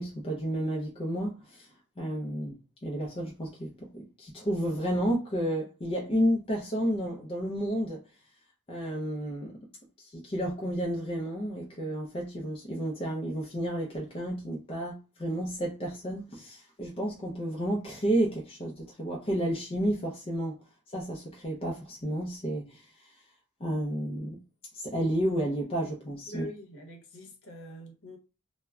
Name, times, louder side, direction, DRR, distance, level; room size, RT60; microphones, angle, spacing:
voice 1, 0.0-1.7 2.0-8.0 8.7-9.6 10.0-20.6 20.9-22.8 23.6-24.4 24.7-26.4, equal, 25° left, 0.4 m, -31 dB
voice 2, 26.3-28.2, equal, 60° left, 0.8 m, -44 dB
2.2 x 2.0 x 3.4 m
head